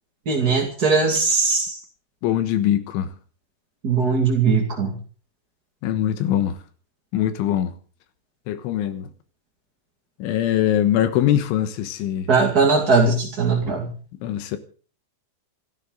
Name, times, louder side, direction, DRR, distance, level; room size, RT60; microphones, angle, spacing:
voice 1, 0.2-1.8 3.8-4.9 12.3-13.9, right 4 dB, 35° right, 1.5 m, -19 dB
voice 2, 2.2-3.1 5.8-6.6 7.1-7.7 8.5-9.1 10.2-12.3 14.2-14.6, left 11 dB, 80° left, 3.7 m, -22 dB
27.0 x 13.0 x 3.9 m
omnidirectional pair, 5.5 m